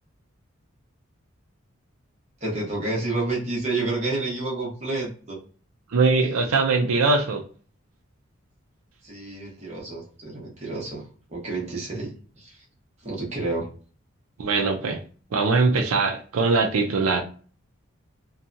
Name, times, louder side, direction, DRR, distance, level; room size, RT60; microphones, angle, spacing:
voice 1, 2.4-5.4 9.0-11.0 11.3-12.1 12.4-12.6 13.0-13.7, right 2 dB, 30° right, -4 dB, 1.0 m, -29 dB
voice 2, 5.9-7.4 14.4-15.0 15.3-17.2, right 3 dB, 90° right, 4 dB, 0.4 m, -21 dB
2.7 x 2.2 x 2.5 m, 0.40 s
head